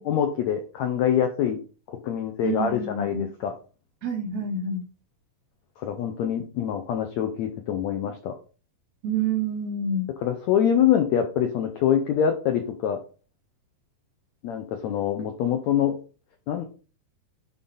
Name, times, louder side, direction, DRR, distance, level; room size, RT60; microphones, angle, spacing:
voice 1, 0.0-1.6 1.9-3.5 5.8-8.3 10.2-13.0 14.4-16.0 16.5-16.6, left 9 dB, 80° left, 5 dB, 1.6 m, -25 dB
voice 2, 2.4-3.3 4.0-4.9 9.0-10.1, right 3 dB, 65° right, 3 dB, 1.9 m, -28 dB
9.7 x 3.9 x 4.0 m, 0.36 s
omnidirectional pair, 4.1 m